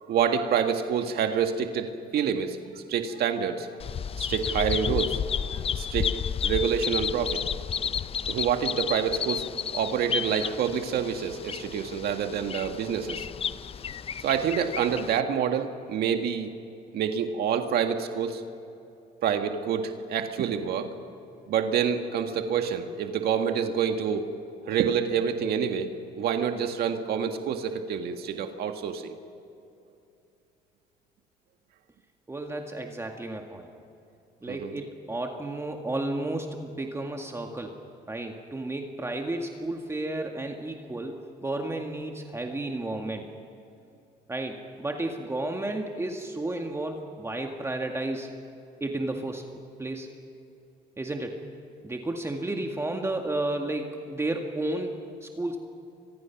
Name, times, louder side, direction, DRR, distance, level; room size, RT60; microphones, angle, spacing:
voice 1, 0.1-2.6 2.9-3.7 4.2-5.2 5.8-6.2 6.4-7.4 8.3-9.4 9.7-13.3 14.2-16.5 16.9-18.4 19.2-21.0 21.5-24.2 24.7-25.9 26.2-29.1 34.4-34.7, right 7 dB, 70° right, 6 dB, 1.8 m, -27 dB
Bird vocalization bird call bird song, 3.8-15.2, left 7 dB, 35° left, 0.5 m, -32 dB
voice 2, 32.3-33.7 34.4-37.8 38.1-43.2 44.3-48.3 48.8-49.4 49.8-50.1 51.0-51.4 51.8-55.6, right 2 dB, 15° right, 2 dB, 2.0 m, -32 dB
29.0 x 24.5 x 6.0 m, 2.6 s
cardioid pair, 110°, 17 cm